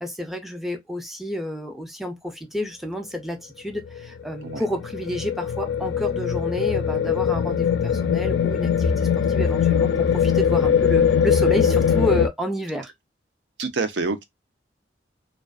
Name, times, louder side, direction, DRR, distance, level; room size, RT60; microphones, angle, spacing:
voice 1, 0.0-12.9, equal, ahead, 0.5 m, -30 dB
sound 1, 3.8-12.3, left 7 dB, 75° left, 0.3 m, -21 dB
voice 2, 13.6-14.2, right 4 dB, 75° right, 0.5 m, -26 dB
2.4 x 2.2 x 2.3 m
head